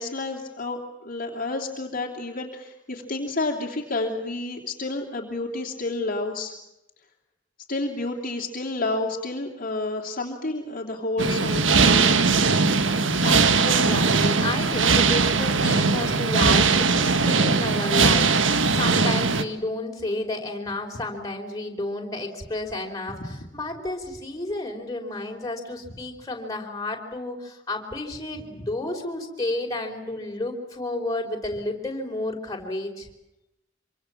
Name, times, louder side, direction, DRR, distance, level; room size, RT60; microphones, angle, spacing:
voice 1, 0.0-6.5 7.7-12.1 23.2-23.3, left 2 dB, 45° left, 0 dB, 3.2 m, -30 dB
sound 1, 11.2-19.4, right 4 dB, 75° right, 1.5 m, -20 dB
voice 2, 13.2-23.2 23.5-33.1, left 2 dB, 20° left, 0 dB, 4.8 m, -31 dB
26.5 x 25.5 x 7.4 m, 0.88 s
head